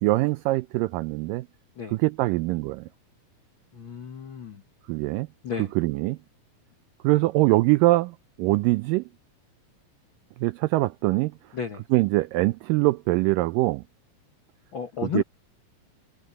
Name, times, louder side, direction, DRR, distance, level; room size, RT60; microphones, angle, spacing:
voice 1, 0.0-1.5 1.9-2.8 4.9-5.3 5.8-6.2 7.0-9.0 10.4-11.3 11.9-13.8 15.1-15.2, right 20 dB, 85° right, 1.9 m, -23 dB
voice 2, 3.7-4.6 5.4-5.7 11.5-11.8 14.7-15.2, left 8 dB, 75° left, 1.1 m, -32 dB
omnidirectional pair, 4.4 m